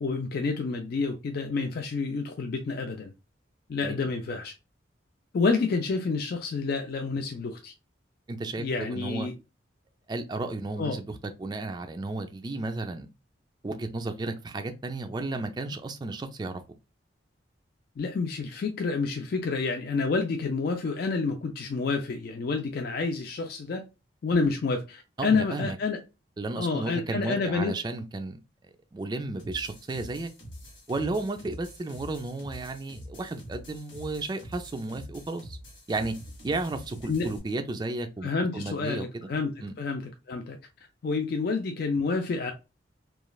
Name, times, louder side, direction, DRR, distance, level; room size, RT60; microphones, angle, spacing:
voice 1, 0.0-3.1 3.7-4.5 5.3-7.7 8.6-9.3 10.8-10.9 18.0-23.8 24.2-26.0 26.6-27.7 37.1-37.3 38.2-40.0 40.3-40.6 41.0-42.5, left 4 dB, 55° left, 0.3 m, -29 dB
voice 2, 8.3-9.3 10.1-13.1 13.6-16.6 25.2-25.8 26.4-28.4 28.9-30.3 30.9-35.6 35.9-36.2 36.4-39.1 39.6-39.7, right 2 dB, 20° right, 0.3 m, -33 dB
sound 1, 29.4-37.4, equal, 75° left, 1.3 m, -45 dB
3.1 x 2.3 x 2.2 m
head